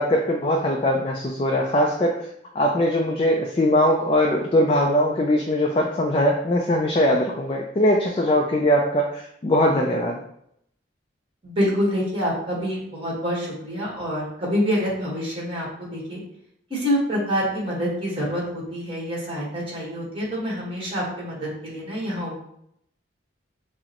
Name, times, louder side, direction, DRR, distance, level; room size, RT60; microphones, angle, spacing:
voice 1, 0.0-2.2 2.6-10.2, left 1 dB, 30° left, 1 dB, 0.3 m, -21 dB
voice 2, 11.4-16.2 16.7-22.4, equal, 25° right, -4 dB, 1.4 m, -26 dB
6.1 x 2.1 x 2.9 m, 0.73 s
head